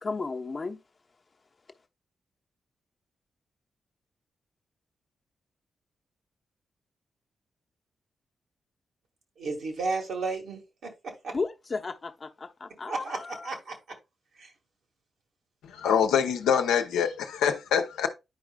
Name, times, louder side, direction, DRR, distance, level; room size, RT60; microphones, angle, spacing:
voice 1, 0.0-0.8 11.3-13.5, left 4 dB, 45° left, 0.9 m, -34 dB
voice 2, 9.4-11.3 12.9-13.8 14.4-14.5, right 3 dB, 70° right, 1.8 m, -33 dB
voice 3, 15.6-18.1, left 8 dB, 80° left, 0.8 m, -25 dB
9.7 x 4.9 x 2.3 m
hypercardioid pair, 40°, 0 cm